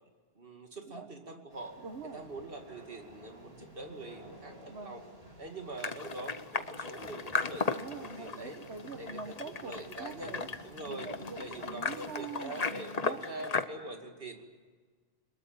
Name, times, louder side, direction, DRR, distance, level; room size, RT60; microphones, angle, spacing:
voice 1, 0.4-1.7 2.1-5.0 5.4-8.6 9.0-9.2 9.6-11.1 11.4-14.5, right 2 dB, 65° right, 4 dB, 2.6 m, -44 dB
sound 1, 1.5-12.1, equal, 35° right, 5.1 m, -53 dB
voice 2, 1.8-2.2 4.7-5.0 7.7-10.5 10.8-13.2, right 4 dB, 90° right, 6 dB, 1.5 m, -44 dB
sound 2, 5.8-13.6, left 4 dB, 40° left, 1.0 m, -36 dB
23.0 x 21.5 x 8.8 m, 1.5 s
omnidirectional pair, 1.0 m